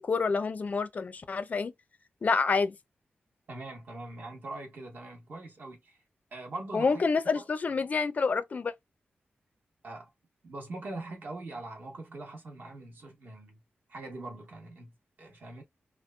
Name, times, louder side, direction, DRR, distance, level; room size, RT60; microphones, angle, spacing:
voice 1, 0.0-1.7 2.2-2.7 6.7-8.7, left 4 dB, 40° left, 0.4 m, -28 dB
voice 2, 3.5-6.0 6.3-7.1 7.3-7.9 9.8-10.1 10.4-13.6 13.9-15.6, right 2 dB, 50° right, 1.0 m, -42 dB
2.9 x 2.3 x 2.2 m
wide cardioid pair, 170°, 4 cm